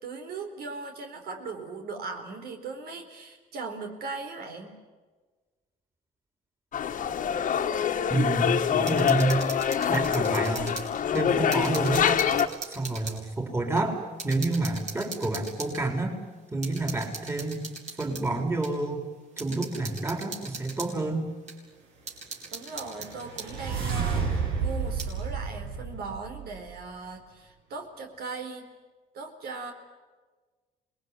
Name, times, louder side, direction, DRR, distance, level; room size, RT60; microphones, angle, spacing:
voice 1, 0.0-4.8 22.5-28.6 29.1-29.7, right 4 dB, 65° right, 4 dB, 4.1 m, -38 dB
sound 1, 6.7-12.5, left 8 dB, 50° left, 1.8 m, -25 dB
voice 2, 8.1-9.4 9.9-10.8 11.1-12.2 12.6-16.2 16.5-17.7 18.0-19.0 19.4-21.3, right 2 dB, 15° right, 3 dB, 4.2 m, -29 dB
sound 2, 8.8-10.9 11.1-13.2 13.8-13.9 14.2-15.8 16.6-18.2 18.6-18.7 19.4-20.9 21.5-21.6 22.1-23.5 23.9-24.0 24.8-25.1, right 4 dB, 45° right, 6.2 m, -40 dB
sound 3, 22.6-26.8, right 5 dB, 85° right, 7.4 m, -31 dB
26.5 x 21.0 x 9.7 m, 1.3 s
cardioid pair, 110°, 17 cm